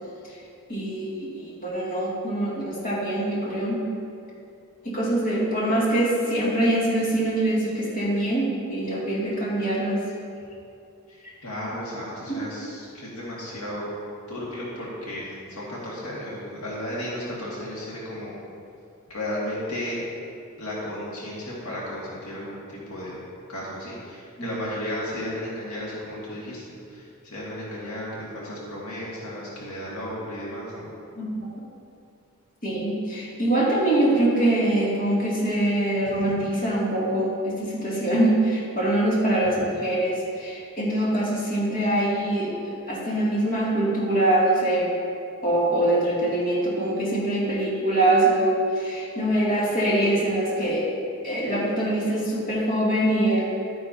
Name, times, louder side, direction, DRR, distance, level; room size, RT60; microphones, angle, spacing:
voice 1, 0.7-3.8 4.8-10.0 12.3-12.4 24.4-24.5 31.2-31.3 32.6-44.9 45.4-50.8 51.2-53.5, right 1 dB, 40° left, -7 dB, 2.5 m, -24 dB
voice 2, 11.1-13.9 14.3-18.3 19.1-20.0 20.6-23.2 23.5-26.6 26.9-30.9, left 1 dB, 75° left, -6 dB, 2.0 m, -34 dB
12.0 x 9.6 x 2.8 m, 2.5 s
head